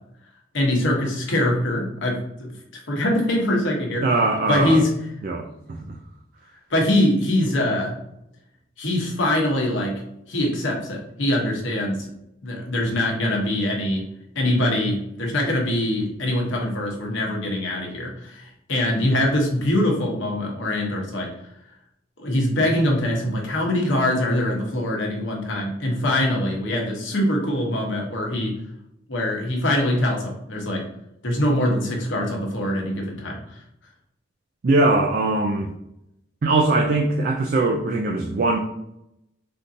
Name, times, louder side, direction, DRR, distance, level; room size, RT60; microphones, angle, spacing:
voice 1, 0.5-2.5 2.9-4.1 4.5-4.9 6.7-8.0 8.8-10.0 10.3-12.0 12.4-14.1 14.3-21.3 22.2-28.5 29.1-30.8 31.2-33.6, left 1 dB, 85° left, -1 dB, 1.0 m, -23 dB
voice 2, 4.0-4.8 5.2-5.9 34.6-35.7 36.4-38.6, right 2 dB, 50° right, 2 dB, 0.3 m, -21 dB
3.6 x 2.7 x 2.6 m, 0.81 s
head